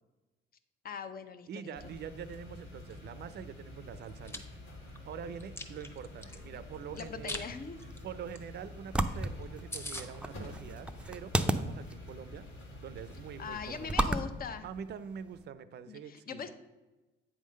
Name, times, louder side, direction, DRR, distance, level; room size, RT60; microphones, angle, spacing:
voice 1, 0.8-1.7 6.9-7.8 13.4-14.6 15.9-16.5, left 6 dB, 50° left, 10 dB, 0.7 m, -41 dB
voice 2, 1.5-4.4 4.8-7.4 8.0-12.5 12.8-14.0 14.6-16.5, right 7 dB, 55° right, 14 dB, 0.5 m, -45 dB
sound 1, 1.7-13.9, left 1 dB, 80° left, 2.0 m, -48 dB
Chewing mastication, 4.0-4.4 4.9-6.4 7.0-7.5 7.8-8.0 8.3-8.4 8.7-8.8 9.1-9.2 9.4-9.5 9.7-10.1, left 1 dB, 10° left, 0.9 m, -41 dB
sound 2, 7.8-15.4, right 1 dB, 5° right, 0.4 m, -36 dB
8.5 x 3.7 x 6.3 m, 1.1 s
cardioid pair, 90°, 20 cm